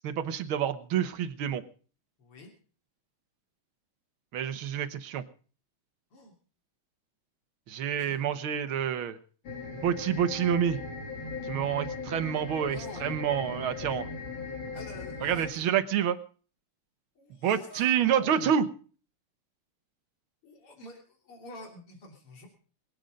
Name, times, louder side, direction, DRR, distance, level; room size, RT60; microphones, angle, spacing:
voice 1, 0.0-1.6 4.3-5.2 7.7-9.2 9.8-10.8 11.4-14.1 15.2-16.2 17.4-18.7, right 9 dB, 70° right, 10 dB, 1.9 m, -28 dB
voice 2, 2.2-2.5 6.1-6.3 8.0-8.2 12.7-13.2 14.7-15.6 17.2-18.5 20.4-22.5, left 3 dB, 80° left, 2 dB, 4.0 m, -47 dB
sound 1, 9.4-15.5, left 4 dB, 65° left, 3.2 m, -38 dB
22.5 x 9.2 x 5.2 m, 0.41 s
omnidirectional pair, 2.4 m